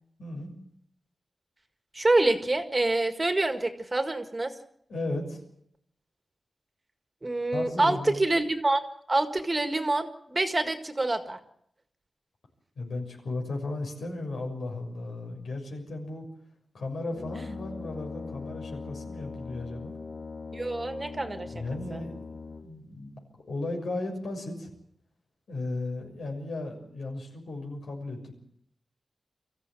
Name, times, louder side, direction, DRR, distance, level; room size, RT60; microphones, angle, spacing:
voice 1, 0.2-0.5 4.9-5.4 7.5-8.3 12.8-16.2 16.7-20.0 21.5-24.7 25.5-28.3, left 2 dB, 85° left, 2 dB, 6.6 m, -35 dB
voice 2, 1.9-4.5 7.2-8.8 9.1-11.4 20.5-21.5 21.9-22.0, right 2 dB, 25° right, 8 dB, 1.8 m, -26 dB
Brass instrument, 17.1-22.9, left 4 dB, 70° left, 1.0 m, -40 dB
24.0 x 15.0 x 9.1 m, 0.71 s
wide cardioid pair, 115°, 0 cm